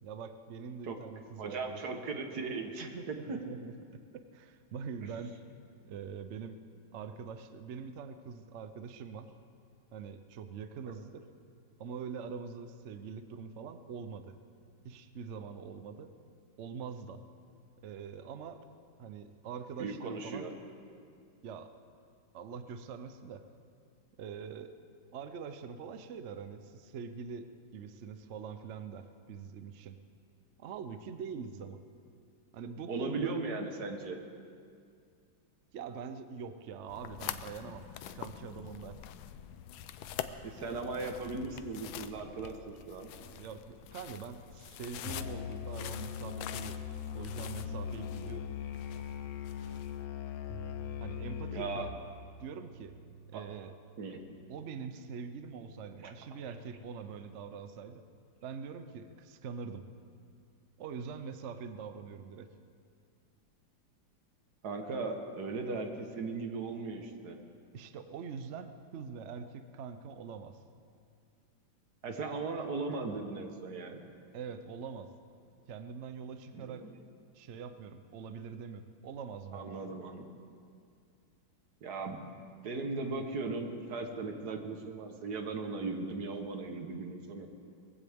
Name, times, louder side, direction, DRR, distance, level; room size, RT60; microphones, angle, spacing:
voice 1, 0.0-1.8 2.8-3.7 4.1-5.3 5.8-6.6 6.9-9.3 9.9-11.2 11.8-14.3 14.8-16.1 16.6-17.2 17.8-18.6 19.0-20.5 21.4-21.7 22.3-23.4 24.2-24.8 25.1-30.0 30.6-31.8 32.5-33.3 35.7-39.0 43.2-46.8 47.1-48.5 51.0-52.1 52.4-52.9 53.3-53.7 54.5-58.0 58.4-59.8 60.8-62.5 67.7-70.6 74.3-75.1 75.7-76.9 77.3-79.9, right 6 dB, 85° right, 9 dB, 0.6 m, -44 dB
voice 2, 1.4-3.4 5.0-5.1 19.8-20.5 32.9-34.2 40.4-42.5 42.9-43.1 51.5-51.9 53.3-53.4 54.0-54.2 56.0-56.1 64.6-67.4 72.0-74.0 76.5-76.9 79.5-80.3 81.8-82.3 82.6-87.5, right 3 dB, 55° right, 4 dB, 1.7 m, -37 dB
sound 1, 36.9-50.0, left 10 dB, 80° left, 1.4 m, -46 dB
Musical instrument, 45.0-52.1, left 8 dB, 65° left, 1.0 m, -40 dB
Bass guitar, 50.5-56.7, right 7 dB, 5° right, 0.8 m, -54 dB
21.0 x 15.5 x 3.5 m, 2.3 s
omnidirectional pair, 2.1 m